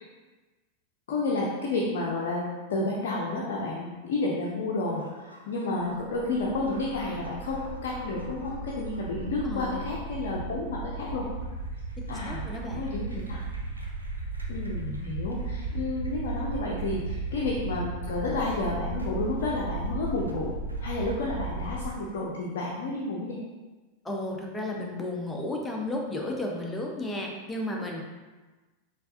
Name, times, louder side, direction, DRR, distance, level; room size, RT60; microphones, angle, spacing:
voice 1, 1.1-11.3 12.1-13.4 14.5-20.5 20.8-23.4, left 2 dB, 55° left, -4 dB, 0.6 m, -31 dB
sound 1, 4.9-21.9, right 2 dB, 85° right, 0.6 m, -36 dB
voice 2, 9.4-9.8 12.0-12.8 24.0-28.0, left 1 dB, 10° left, -1 dB, 0.7 m, -33 dB
4.5 x 3.4 x 2.6 m, 1.2 s
figure-of-eight pair, 90°, 0 cm